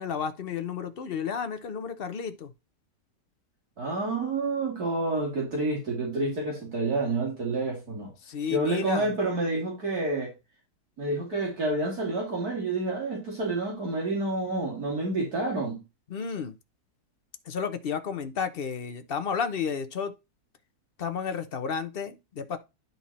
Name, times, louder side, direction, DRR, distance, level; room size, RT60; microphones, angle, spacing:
voice 1, 0.0-2.5 8.2-9.1 16.1-16.5 17.5-20.1 21.0-22.6, left 6 dB, 50° left, 0.7 m, -32 dB
voice 2, 3.8-8.1 8.5-10.3 11.0-15.8, right 2 dB, 60° right, 3.0 m, -29 dB
11.0 x 4.0 x 4.2 m
omnidirectional pair, 1.8 m